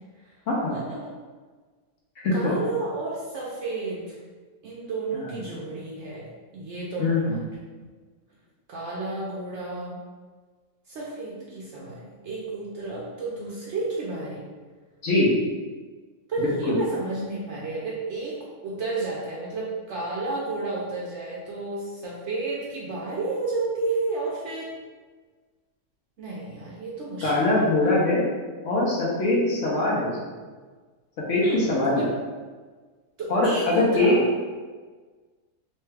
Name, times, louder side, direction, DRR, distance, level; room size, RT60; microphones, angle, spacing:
voice 1, 0.5-0.8 2.2-2.5 5.1-5.3 7.0-7.4 15.0-15.3 16.4-16.8 27.2-28.2 28.6-30.1 31.3-32.0 33.3-34.1, left 2 dB, 60° left, -5 dB, 1.0 m, -22 dB
voice 2, 2.3-4.2 4.6-6.3 6.5-7.5 8.7-10.0 10.9-14.5 16.3-24.7 26.2-27.7 31.4-31.7 31.9-32.1 33.2-34.2, right 3 dB, 65° right, -5 dB, 0.8 m, -31 dB
3.1 x 2.2 x 3.2 m, 1.4 s
omnidirectional pair, 1.6 m